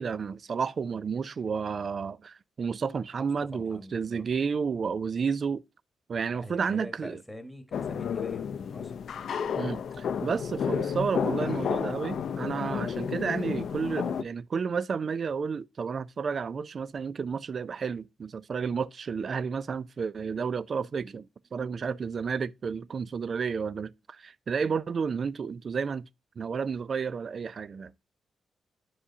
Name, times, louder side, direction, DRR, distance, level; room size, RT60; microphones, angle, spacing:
voice 1, 0.0-5.6 6.1-7.2 9.6-26.1 26.4-27.9, right 6 dB, 50° right, 0.3 m, -31 dB
voice 2, 3.5-4.3 6.3-8.9, equal, 5° left, 1.4 m, -45 dB
sound 1, 7.7-14.2, left 7 dB, 70° left, 0.5 m, -31 dB
9.8 x 4.9 x 2.7 m
cardioid pair, 95°, 0 cm